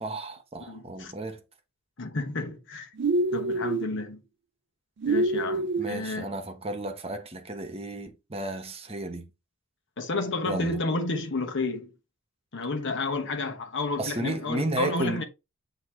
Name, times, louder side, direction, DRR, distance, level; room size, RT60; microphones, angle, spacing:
voice 1, 0.0-1.4 5.8-9.3 10.5-10.8 14.0-15.2, right 2 dB, 30° right, 1.1 m, -33 dB
voice 2, 0.7-1.1 2.0-2.9 3.3-4.2 5.1-6.3 10.0-11.9 12.5-15.2, left 3 dB, 60° left, 1.1 m, -31 dB
sound 1, 3.0-3.9 5.0-5.9, right 2 dB, 55° right, 0.4 m, -26 dB
8.0 x 2.9 x 4.3 m
head